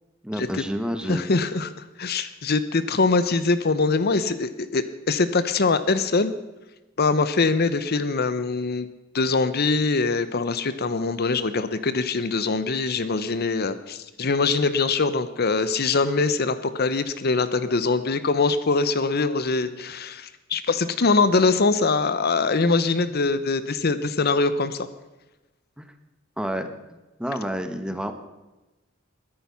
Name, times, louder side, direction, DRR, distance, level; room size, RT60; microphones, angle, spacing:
voice 1, 0.2-1.3 25.8-25.9 26.4-26.7 27.2-28.1, equal, 5° right, 7 dB, 1.2 m, -29 dB
voice 2, 1.1-1.7 2.0-6.3 7.0-8.9 9.1-24.9, left 3 dB, 50° left, 13 dB, 0.8 m, -23 dB
21.5 x 10.5 x 5.7 m, 1.1 s
head